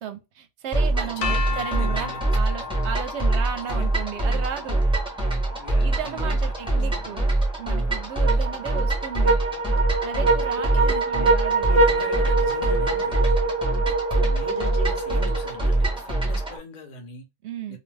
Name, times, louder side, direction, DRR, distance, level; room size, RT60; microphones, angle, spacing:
voice 1, 0.0-4.8 5.8-7.2 7.6-9.4 10.0-11.8 17.4-17.8, right 8 dB, 65° right, 0.9 m, -34 dB
sound 1, 0.7-16.6, right 2 dB, 5° right, 0.7 m, -24 dB
sound 2, 1.2-7.1, left 6 dB, 85° left, 1.0 m, -36 dB
voice 2, 1.2-2.2 2.6-2.8 5.6-6.2 6.6-7.0 8.2-8.4 10.5-11.1 11.6-13.4 13.8-17.2 17.7-17.8, left 3 dB, 45° left, 0.7 m, -40 dB
sound 3, 8.3-15.8, right 3 dB, 40° right, 0.5 m, -25 dB
2.5 x 2.1 x 3.2 m
omnidirectional pair, 1.3 m